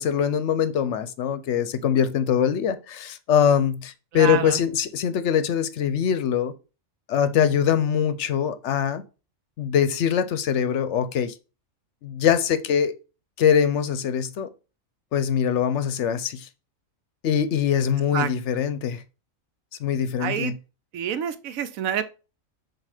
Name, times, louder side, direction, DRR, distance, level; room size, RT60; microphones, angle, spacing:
voice 1, 0.0-6.5 7.1-9.0 9.6-11.3 12.0-12.9 13.4-14.5 15.1-16.5 17.2-19.0 19.8-20.5, left 8 dB, 70° left, 0.9 m, -23 dB
voice 2, 4.1-4.6 18.1-18.3 20.2-20.5 20.9-22.0, right 9 dB, 90° right, 1.1 m, -27 dB
7.3 x 2.7 x 4.8 m
omnidirectional pair, 1.4 m